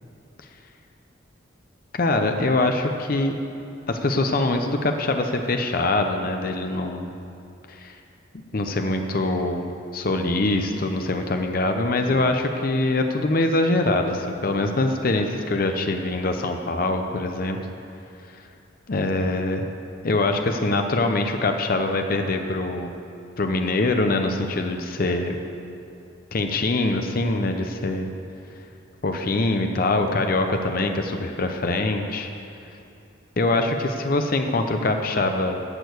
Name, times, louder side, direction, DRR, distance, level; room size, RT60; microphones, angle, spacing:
voice 1, 1.9-3.4 3.9-7.1 7.7-8.0 8.5-17.6 18.3-18.4 18.9-19.7 20.0-22.9 23.4-25.4 26.3-28.1 29.0-32.3 33.4-35.6, left 2 dB, 45° left, 5 dB, 0.6 m, -23 dB
11.0 x 6.7 x 8.1 m, 2.7 s
head